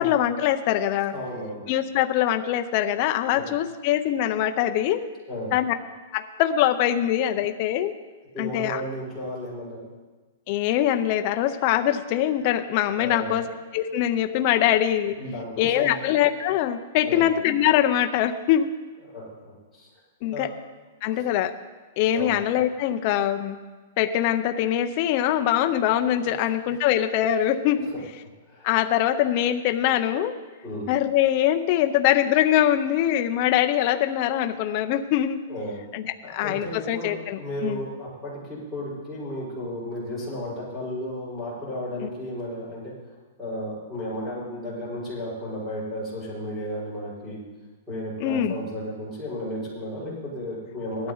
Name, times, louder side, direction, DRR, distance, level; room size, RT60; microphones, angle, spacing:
voice 1, 0.0-1.1 1.7-5.1 5.5-5.7 6.1-7.9 8.4-8.8 10.5-13.5 13.7-15.1 15.6-18.8 20.2-20.5 21.0-21.5 22.0-23.6 24.0-27.9 28.6-30.4 30.9-35.4 35.9-37.8 42.0-42.1 48.2-48.5, left 11 dB, 30° left, 7 dB, 0.5 m, -23 dB
voice 2, 1.1-1.6 3.3-3.4 5.3-5.5 8.3-9.8 13.0-13.4 14.6-14.7 15.2-16.0 17.0-17.3 19.1-19.9 20.3-20.4 21.1-21.2 22.1-22.4 27.9-28.0 28.4-28.8 30.6-30.9 35.5-35.8 36.2-42.9 43.4-47.4 47.9-51.1, left 1 dB, 5° right, -12 dB, 5.4 m, -34 dB
17.5 x 12.0 x 3.9 m, 1.3 s
supercardioid pair, 180°, 0 cm